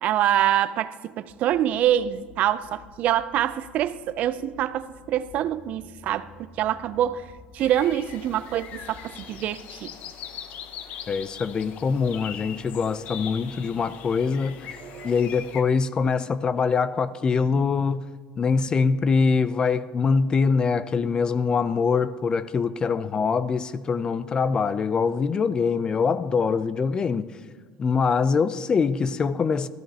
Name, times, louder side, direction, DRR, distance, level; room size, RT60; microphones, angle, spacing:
voice 1, 0.0-7.3 7.5-9.9 14.7-15.1, right 11 dB, 55° right, 0.4 m, -25 dB
sound 1, 1.3-9.3, left 4 dB, 80° left, 2.0 m, -51 dB
sound 2, 7.6-15.6, left 9 dB, 60° left, 0.8 m, -41 dB
voice 2, 11.1-14.8 15.0-18.0 18.4-27.3 27.8-29.7, left 5 dB, 30° left, 0.4 m, -23 dB
13.5 x 13.0 x 2.8 m
cardioid pair, 120°, 3 cm